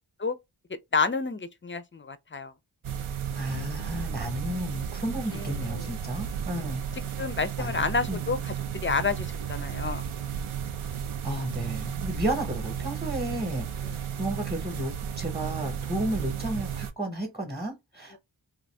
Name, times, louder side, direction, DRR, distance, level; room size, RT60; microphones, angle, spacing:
voice 1, 0.9-2.5 5.3-5.9 6.6-6.7 7.2-10.0 13.8-14.0 18.1-18.2, left 4 dB, 25° left, 0.4 m, -30 dB
sound 1, 2.8-16.9, right 8 dB, 90° right, 0.5 m, -34 dB
voice 2, 3.3-6.8 7.6-7.8 8.1-8.2 11.2-18.2, right 1 dB, 10° right, 0.9 m, -33 dB
2.7 x 2.6 x 3.2 m
wide cardioid pair, 45°, 48 cm